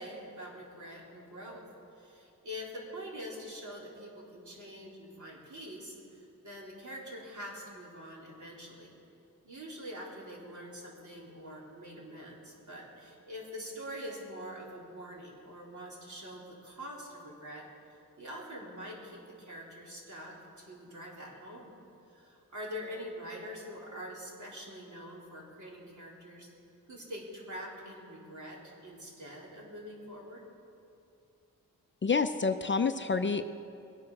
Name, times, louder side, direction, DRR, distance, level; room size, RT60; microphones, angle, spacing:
voice 1, 0.0-1.7 2.0-8.9 9.4-17.6 18.2-21.7 22.1-26.5 26.9-30.4, equal, 55° right, -4 dB, 4.0 m, -45 dB
voice 2, 32.0-33.4, left 5 dB, 35° left, 9 dB, 0.5 m, -28 dB
21.5 x 8.8 x 6.3 m, 2.8 s
cardioid pair, 75°, 34 cm